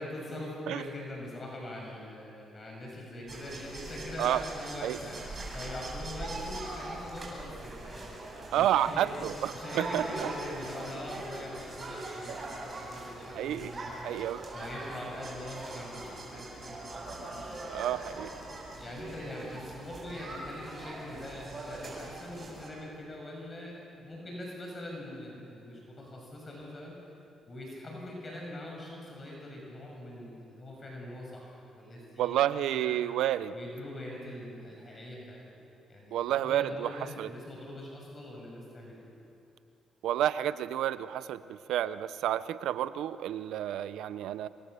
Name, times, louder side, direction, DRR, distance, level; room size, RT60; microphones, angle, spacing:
voice 1, 0.0-9.2 9.5-14.1 14.5-17.6 18.2-18.3 18.7-26.9 27.5-32.4 32.7-33.0 33.5-35.6 35.9-39.0, left 1 dB, 30° left, -2 dB, 7.2 m, -43 dB
sound 1, 3.3-22.7, right 2 dB, 35° right, 7.9 m, -41 dB
voice 2, 8.5-10.3 12.3-12.4 13.3-13.7 14.0-14.4 17.7-18.3 32.2-33.5 36.1-37.3 40.0-44.5, right 11 dB, 85° right, 14 dB, 0.7 m, -30 dB
27.5 x 23.0 x 6.9 m, 2.7 s
cardioid pair, 90°, 0 cm